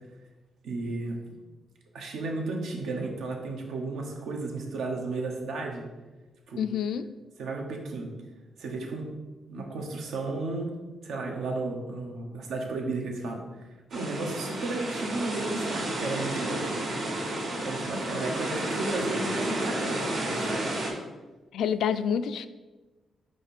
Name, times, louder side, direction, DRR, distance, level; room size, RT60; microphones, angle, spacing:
voice 1, 0.6-1.2 1.9-5.9 6.5-6.6 7.4-8.1 8.6-9.1 9.5-10.8 11.0-16.7 17.6-20.7, right 3 dB, 85° right, 2 dB, 1.1 m, -33 dB
voice 2, 6.6-7.1 21.5-22.5, left 8 dB, 80° left, 12 dB, 0.3 m, -27 dB
sound 1, 13.9-20.9, right 1 dB, 65° right, 1.8 m, -31 dB
5.0 x 4.7 x 4.3 m, 1.2 s
cardioid pair, 125°, 0 cm